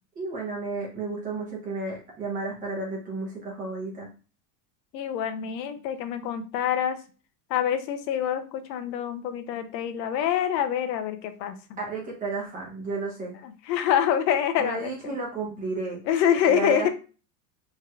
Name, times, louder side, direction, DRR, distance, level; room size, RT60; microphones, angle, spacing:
voice 1, 0.1-4.1 11.8-13.3 14.6-16.0 16.5-16.9, right 3 dB, 15° right, -3 dB, 0.7 m, -32 dB
voice 2, 4.9-7.0 7.5-11.5 13.7-14.9 16.1-16.9, left 9 dB, 80° left, 9 dB, 0.7 m, -25 dB
3.3 x 2.9 x 2.3 m, 0.35 s
supercardioid pair, 155°, 50 cm